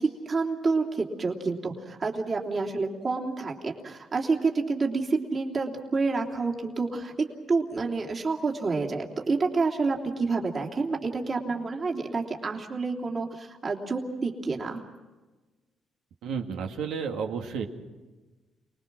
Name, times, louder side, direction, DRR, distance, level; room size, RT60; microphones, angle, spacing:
voice 1, 0.0-7.1 7.5-14.8, right 4 dB, 40° right, 0 dB, 3.1 m, -28 dB
voice 2, 16.2-17.7, right 6 dB, 85° right, 3 dB, 2.1 m, -31 dB
28.5 x 20.0 x 6.2 m, 1.2 s
cardioid pair, 90°, 0 cm